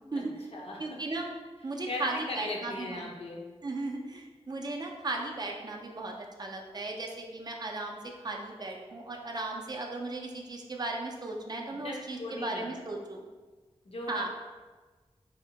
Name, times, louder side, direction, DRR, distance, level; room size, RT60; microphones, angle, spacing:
voice 1, 0.1-0.8 1.9-3.4 11.7-12.7 13.8-14.3, left 2 dB, 60° left, -2 dB, 0.5 m, -38 dB
voice 2, 0.8-1.3 1.6-3.0 3.6-6.1 6.4-8.0 8.2-13.2 14.1-14.3, right 2 dB, 40° right, 1 dB, 0.3 m, -36 dB
2.7 x 2.1 x 2.7 m, 1.3 s
wide cardioid pair, 75°, 11 cm